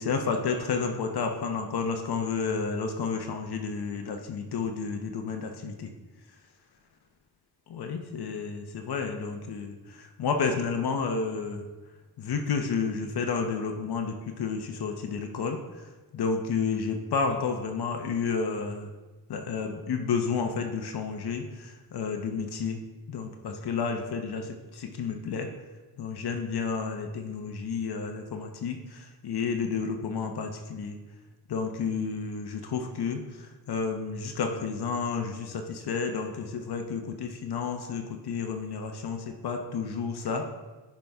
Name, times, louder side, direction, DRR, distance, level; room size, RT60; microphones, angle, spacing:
voice 1, 0.0-5.9 7.7-11.7 12.2-15.9 16.1-18.9 19.3-25.5 26.0-31.0 31.5-40.5, left 5 dB, 70° left, 4 dB, 0.9 m, -31 dB
10.5 x 5.2 x 3.5 m, 1.2 s
wide cardioid pair, 110°, 40 cm